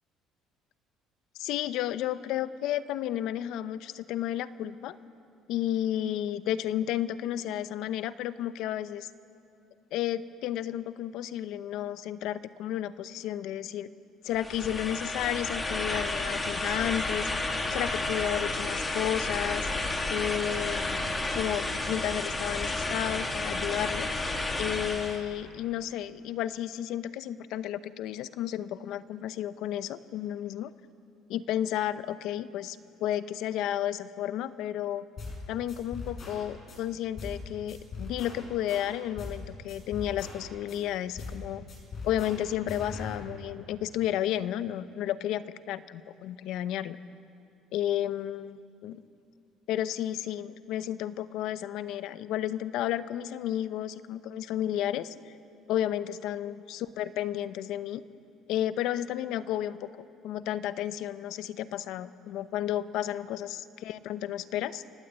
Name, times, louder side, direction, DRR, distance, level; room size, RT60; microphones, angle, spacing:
voice 1, 1.4-5.0 5.5-9.1 9.9-13.9 14.2-19.7 20.1-24.1 24.6-30.7 31.3-35.0 35.5-41.6 42.0-47.0 47.7-49.0 49.7-55.3 55.7-58.0 58.5-59.9 60.2-64.8, left 11 dB, 70° left, 14 dB, 0.8 m, -32 dB
sound 1, 14.3-25.2, left 2 dB, 20° left, 2.4 m, -31 dB
sound 2, 35.2-35.4 35.7-36.8 37.2-37.4 37.7-39.4 39.7-40.8 41.2-41.4 41.7-43.2, left 3 dB, 40° left, 6.6 m, -40 dB
29.0 x 17.5 x 8.2 m, 2.5 s
cardioid pair, 130°, 0 cm